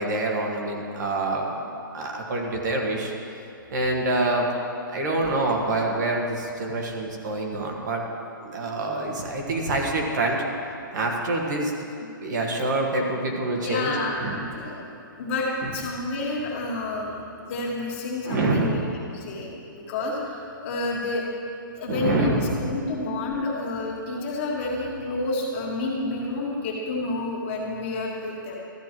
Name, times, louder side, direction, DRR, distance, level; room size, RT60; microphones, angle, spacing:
voice 1, 0.0-3.1 3.7-4.5 4.9-8.0 8.4-10.4 10.9-11.7 12.2-14.4 18.2-18.9 21.9-22.8, right 2 dB, 55° right, 0 dB, 1.5 m, -26 dB
voice 2, 13.6-14.8 15.2-18.8 19.1-21.2 21.8-22.3 22.6-28.6, left 2 dB, 35° left, -3 dB, 1.7 m, -29 dB
13.5 x 9.3 x 3.0 m, 2.6 s
hypercardioid pair, 165°, 11 cm